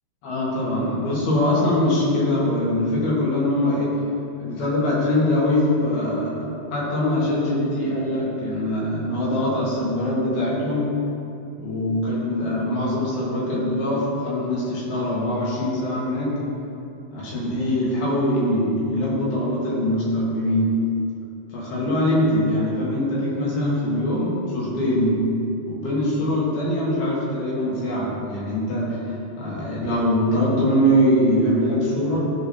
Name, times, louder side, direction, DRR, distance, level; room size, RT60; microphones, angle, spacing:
voice 1, 0.2-4.0 4.4-11.0 11.6-16.4 17.1-20.8 21.5-25.3 25.7-32.3, left 1 dB, 70° left, -6 dB, 3.3 m, -23 dB
14.5 x 4.9 x 2.8 m, 2.7 s
omnidirectional pair, 4.9 m